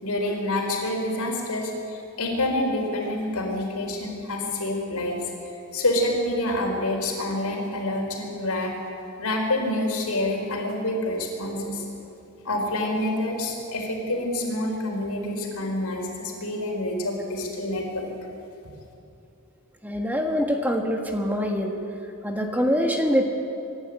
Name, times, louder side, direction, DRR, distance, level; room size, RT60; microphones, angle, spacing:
voice 1, 0.0-5.2 5.7-8.8 9.2-11.8 12.4-18.0, left 1 dB, 85° left, 0 dB, 4.7 m, -27 dB
voice 2, 19.8-21.8 22.2-23.2, equal, 10° right, 3 dB, 1.6 m, -24 dB
24.5 x 11.5 x 9.6 m, 2.8 s
head